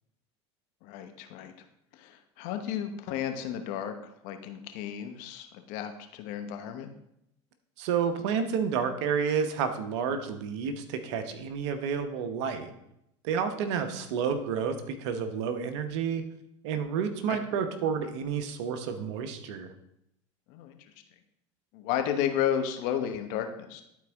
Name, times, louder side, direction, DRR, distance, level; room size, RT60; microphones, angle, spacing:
voice 1, 0.8-1.5 1.9-4.0 4.2-6.9 17.3-17.4 20.5-20.8 21.7-23.8, left 9 dB, 60° left, 7 dB, 1.0 m, -33 dB
voice 2, 7.8-12.7 13.2-16.2 16.6-19.7, right 6 dB, 70° right, 8 dB, 1.0 m, -30 dB
11.5 x 4.6 x 3.6 m, 0.79 s
hypercardioid pair, 85°, 15 cm